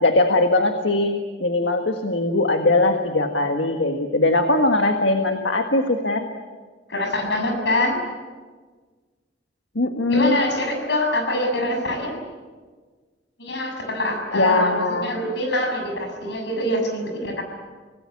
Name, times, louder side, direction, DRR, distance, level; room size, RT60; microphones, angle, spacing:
voice 1, 0.0-6.3 9.7-10.4 14.3-15.1, left 2 dB, 85° left, 5 dB, 1.7 m, -20 dB
voice 2, 6.9-8.0 10.1-12.2 13.4-17.4, left 1 dB, 70° left, 3 dB, 6.9 m, -24 dB
27.0 x 19.0 x 8.5 m, 1.4 s
head